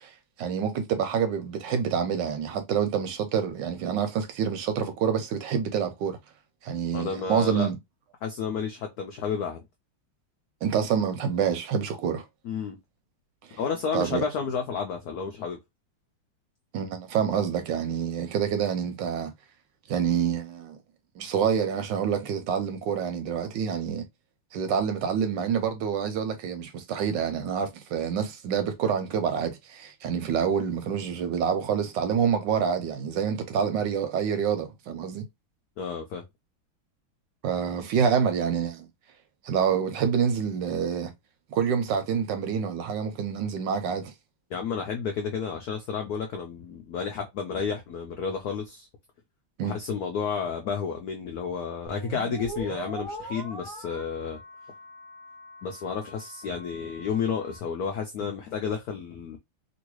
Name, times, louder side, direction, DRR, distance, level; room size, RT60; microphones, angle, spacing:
voice 1, 0.0-6.2 6.6-7.8 10.6-12.2 13.5-13.6 13.9-14.2 16.7-19.3 19.9-20.8 21.2-24.0 24.5-35.2 37.4-38.9 39.4-41.1 41.5-44.1 49.6-49.8, right 7 dB, 75° right, 1.2 m, -27 dB
voice 2, 6.9-7.7 8.2-9.6 12.4-12.8 13.6-15.6 35.8-36.2 44.5-48.9 49.6-54.4 55.6-59.4, left 6 dB, 85° left, 0.8 m, -31 dB
sound 1, 51.9-57.6, right 1 dB, 25° right, 0.6 m, -41 dB
3.1 x 2.7 x 3.0 m
omnidirectional pair, 2.2 m